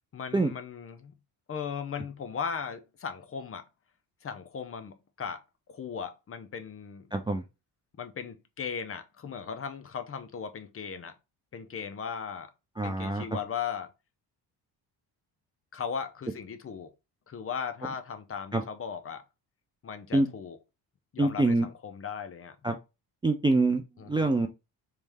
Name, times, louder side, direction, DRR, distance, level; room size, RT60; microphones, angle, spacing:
voice 1, 0.1-1.1 1.5-3.6 4.2-5.4 5.7-7.0 8.0-11.1 11.5-12.5 12.8-13.9 15.7-16.9 17.3-19.2 19.8-20.6 21.1-22.6 24.0-24.3, left 6 dB, 35° left, 0.6 m, -37 dB
voice 2, 7.1-7.4 12.8-13.2 18.5-18.6 20.1-20.3 21.2-21.7 22.6-22.8 23.2-23.8 24.1-24.5, right 2 dB, 10° right, 0.4 m, -25 dB
3.3 x 3.2 x 3.4 m
cardioid pair, 100°, 41 cm